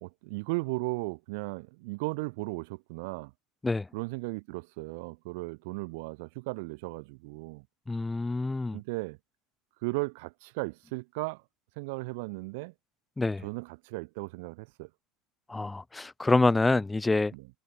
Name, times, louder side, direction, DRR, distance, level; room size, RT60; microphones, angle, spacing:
voice 1, 0.0-3.3 3.9-7.6 8.7-9.2 9.8-11.4 11.8-12.7 13.4-14.9 17.3-17.5, right 27 dB, 80° right, 1.0 m, -36 dB
voice 2, 7.9-8.8 13.2-13.4 15.5-17.3, left 3 dB, 10° left, 0.4 m, -26 dB
supercardioid pair, 130°, 0 cm